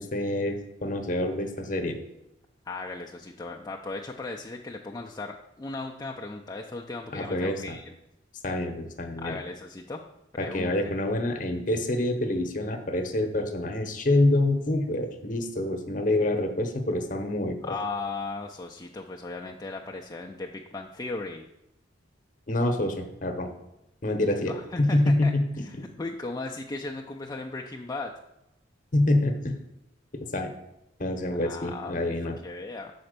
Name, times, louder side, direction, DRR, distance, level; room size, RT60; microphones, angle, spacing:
voice 1, 0.0-2.0 7.1-7.6 8.4-9.4 10.4-17.7 22.5-23.5 24.0-25.4 25.8-25.9 28.9-29.6 30.3-30.5 31.0-32.3, left 1 dB, 45° left, 6 dB, 0.9 m, -26 dB
voice 2, 2.7-7.9 9.2-10.0 10.4-10.8 17.6-21.5 24.5-25.3 25.6-28.2 31.3-32.9, left 3 dB, 20° left, 0 dB, 0.4 m, -37 dB
6.9 x 4.3 x 6.6 m, 0.88 s
head